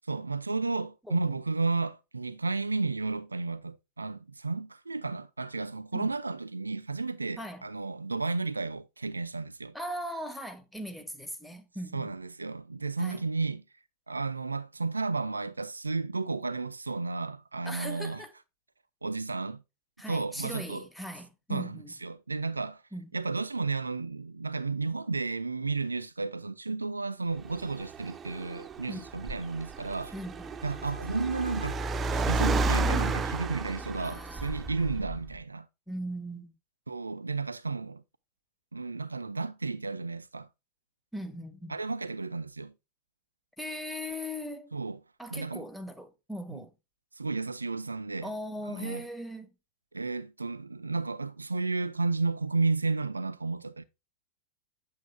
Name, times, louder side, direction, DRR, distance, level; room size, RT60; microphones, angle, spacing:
voice 1, 0.1-9.7 11.9-13.6 14.1-18.3 19.0-19.6 20.1-20.9 21.5-22.8 23.1-30.1 30.6-31.8 32.1-35.7 36.9-38.0 38.7-40.5 41.7-42.7 44.7-45.0 45.3-45.6 46.5-46.6 47.2-48.3 48.6-49.1 49.9-53.8, right 3 dB, 80° right, 0.4 m, -32 dB
voice 2, 9.7-12.1 13.0-13.3 17.6-18.3 20.0-21.9 22.9-23.1 28.9-29.1 30.1-30.9 34.0-34.9 35.9-36.5 41.1-41.7 43.6-44.8 45.2-46.7 48.2-49.5, equal, ahead, 1.3 m, -39 dB
Car, 27.4-35.4, right 3 dB, 20° right, 0.5 m, -32 dB
8.1 x 6.9 x 2.2 m
figure-of-eight pair, 90°, 0 cm